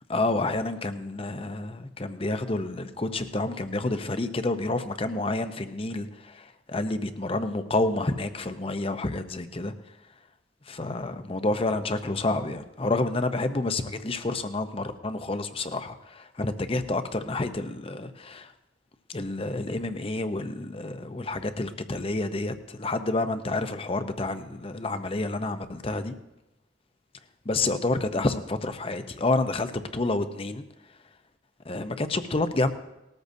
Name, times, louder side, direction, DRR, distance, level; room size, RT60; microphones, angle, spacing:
voice 1, 0.1-9.7 10.7-18.5 19.1-26.2 27.5-30.6 31.6-32.7, left 2 dB, 30° left, 9 dB, 0.7 m, -29 dB
19.5 x 13.5 x 2.7 m, 0.97 s
head